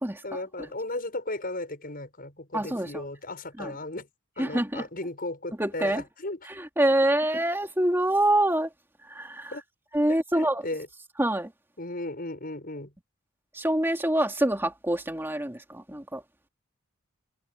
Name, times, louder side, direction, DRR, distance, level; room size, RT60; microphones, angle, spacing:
voice 1, 0.2-4.1 4.4-6.4 9.5-9.6 10.1-10.9 11.8-12.9, left 2 dB, 45° left, 7.0 m, -35 dB
voice 2, 2.5-3.0 3.6-3.7 4.4-4.8 5.6-6.0 6.5-8.7 9.1-9.5 9.9-10.6 11.2-11.5 13.5-16.2, right 1 dB, 10° right, 2.7 m, -25 dB
head